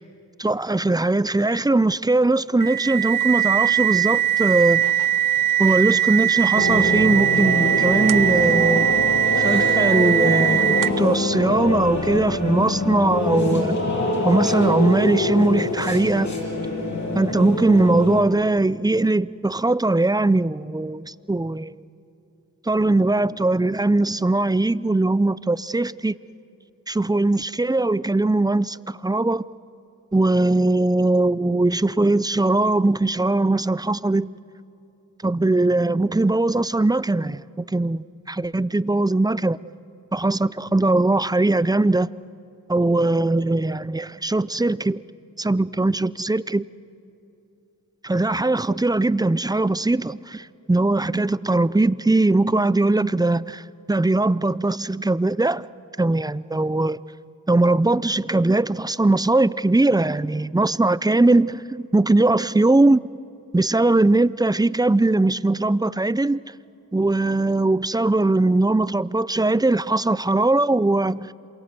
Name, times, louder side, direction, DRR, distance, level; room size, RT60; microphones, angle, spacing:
voice 1, 0.4-4.9 5.6-8.9 9.4-13.8 14.2-16.3 17.1-21.8 22.7-26.2 26.9-29.5 30.1-34.3 35.2-39.6 40.1-42.1 42.7-45.0 45.4-46.7 48.0-53.6 53.9-55.7 56.0-57.0 57.5-63.1 63.5-66.4 66.9-71.3, right 2 dB, 10° right, 0.5 m, -20 dB
sound 1, 2.6-11.1, right 11 dB, 70° right, 0.6 m, -20 dB
sound 2, 6.5-18.2, left 2 dB, 55° left, 7.6 m, -25 dB
27.5 x 22.5 x 7.9 m
cardioid pair, 65°, 34 cm